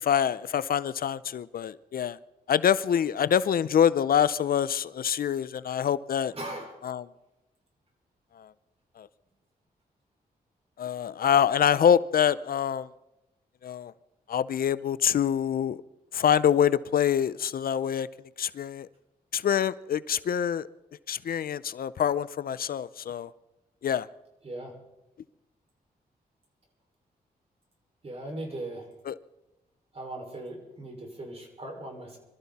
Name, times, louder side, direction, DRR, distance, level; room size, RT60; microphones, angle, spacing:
voice 1, 0.0-2.2 2.5-6.3 6.8-7.0 8.4-8.5 9.0-9.1 10.8-12.9 13.6-13.9 14.3-15.8 16.1-18.1 18.4-18.9 19.3-20.7 21.1-23.3 23.8-24.1 29.1-29.2, left 9 dB, 65° left, 0.6 m, -25 dB
voice 2, 6.3-6.9 24.4-24.7 28.0-28.9 29.9-32.2, right 1 dB, 40° right, 5.4 m, -39 dB
25.0 x 13.5 x 4.2 m
cardioid pair, 90°, 16 cm